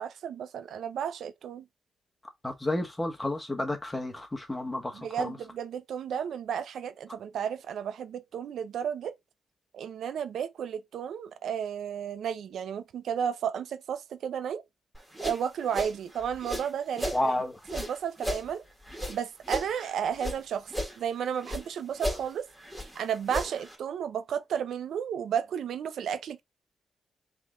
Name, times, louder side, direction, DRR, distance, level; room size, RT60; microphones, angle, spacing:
voice 1, 0.0-1.6 4.9-9.1 9.7-14.6 15.2-17.3 17.7-18.6 19.1-22.5 23.0-26.4, right 8 dB, 80° right, 0.5 m, -33 dB
voice 2, 2.4-5.4 17.1-17.6, left 1 dB, 10° left, 1.2 m, -31 dB
sound 1, 14.9-17.2 17.6-20.4 20.7-21.7 21.9-23.8, equal, 5° right, 1.9 m, -35 dB
3.6 x 3.4 x 3.7 m
cardioid pair, 100°, 0 cm